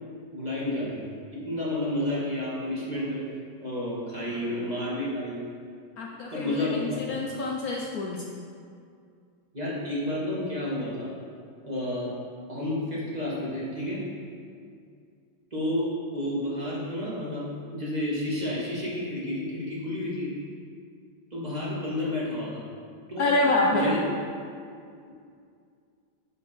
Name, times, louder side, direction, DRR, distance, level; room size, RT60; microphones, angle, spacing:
voice 1, 0.3-1.0 1.3-3.2 3.6-5.4 6.3-7.0 9.5-11.1 11.6-12.1 12.5-14.0 15.5-17.5 17.7-20.3 21.3-22.6 23.1-23.3 23.7-24.0, left 1 dB, 25° right, -7 dB, 1.6 m, -30 dB
voice 2, 6.0-8.2 23.2-24.0, left 2 dB, 65° left, -1 dB, 1.0 m, -27 dB
10.0 x 4.4 x 4.4 m, 2.3 s
omnidirectional pair, 1.9 m